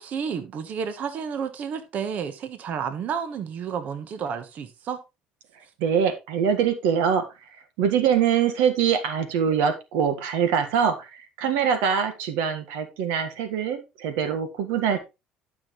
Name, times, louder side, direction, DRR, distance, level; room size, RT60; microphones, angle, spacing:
voice 1, 0.0-5.0, right 7 dB, 55° right, 1.2 m, -31 dB
voice 2, 5.8-7.2 7.8-15.0, right 7 dB, 90° right, 1.6 m, -23 dB
12.0 x 6.0 x 3.2 m
cardioid pair, 110°, 3 cm